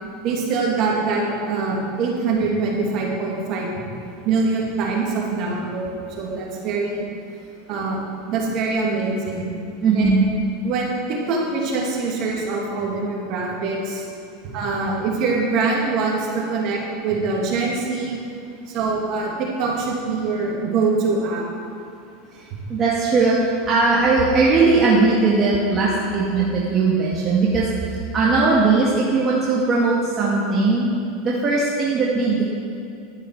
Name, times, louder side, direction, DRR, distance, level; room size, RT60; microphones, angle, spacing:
voice 1, 0.2-3.7 4.2-7.0 7.7-8.0 8.3-9.5 9.9-10.1 10.6-14.1 14.5-18.2 18.7-21.4, right 4 dB, 50° right, -2 dB, 2.7 m, -24 dB
voice 2, 9.8-10.3 22.3-30.9 31.2-32.4, right 3 dB, 35° right, -5 dB, 1.9 m, -19 dB
11.0 x 9.8 x 4.8 m, 2.6 s
hypercardioid pair, 90°, 0 cm